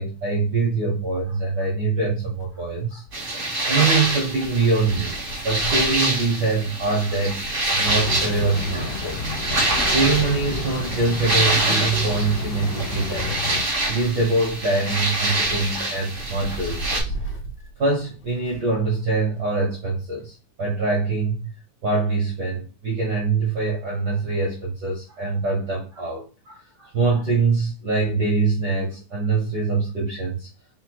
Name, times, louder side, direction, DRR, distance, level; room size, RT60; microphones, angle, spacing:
voice 1, 0.0-3.0 3.5-5.2 5.4-7.4 7.7-9.3 9.8-13.3 13.9-17.1 17.8-21.5 21.8-30.5, right 3 dB, 70° right, 1.0 m, -24 dB
Wind, 2.3-18.8 19.1-19.2 20.2-20.3, right 1 dB, 60° left, 1.0 m, -38 dB
sound 1, 3.1-17.0, right 2 dB, 45° right, 0.6 m, -26 dB
sound 2, 7.8-13.6, left 4 dB, 80° left, 2.1 m, -31 dB
4.9 x 2.2 x 4.6 m
omnidirectional pair, 3.6 m